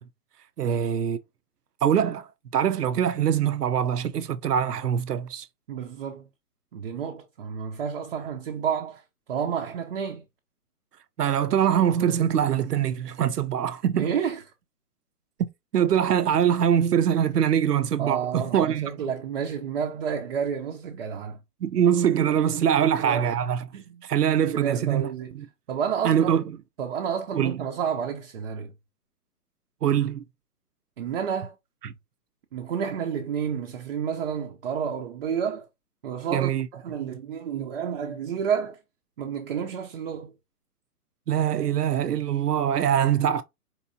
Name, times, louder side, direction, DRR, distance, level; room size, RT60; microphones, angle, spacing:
voice 1, 0.6-1.2 1.8-2.3 2.5-5.5 11.2-14.1 15.7-19.0 21.6-23.7 24.0-25.1 25.3-25.5 26.0-26.4 27.3-27.6 29.8-30.2 31.8-31.9 36.3-36.7 41.3-43.4, right 9 dB, 85° right, 0.7 m, -23 dB
voice 2, 5.7-6.2 6.7-9.0 9.3-10.3 14.0-14.4 18.0-21.4 22.8-23.3 23.7-24.0 24.4-25.4 25.7-26.5 26.8-28.7 31.0-31.5 32.5-35.7 36.0-38.8 39.2-40.3, right 7 dB, 40° right, 0.6 m, -30 dB
4.6 x 3.0 x 2.6 m
hypercardioid pair, 140°, 46 cm